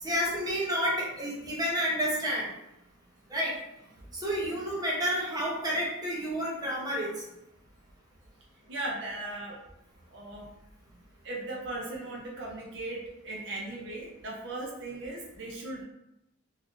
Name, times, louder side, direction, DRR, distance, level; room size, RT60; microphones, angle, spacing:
voice 1, 0.0-2.5 3.3-3.5 4.2-7.2, equal, 20° right, -5 dB, 0.7 m, -30 dB
voice 2, 8.7-9.6 10.1-10.5 11.2-15.8, right 2 dB, 60° right, -1 dB, 0.5 m, -37 dB
3.5 x 2.5 x 2.5 m, 0.86 s
head